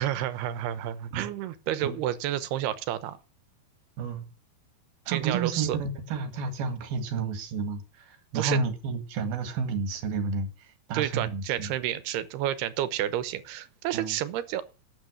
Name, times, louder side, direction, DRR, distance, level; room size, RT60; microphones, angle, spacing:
voice 1, 0.0-3.2 5.1-5.8 8.3-8.6 10.9-14.6, right 12 dB, 90° right, 3.0 m, -30 dB
voice 2, 5.1-11.7 13.9-14.2, right 5 dB, 70° right, 3.7 m, -31 dB
12.0 x 9.0 x 6.3 m
omnidirectional pair, 4.6 m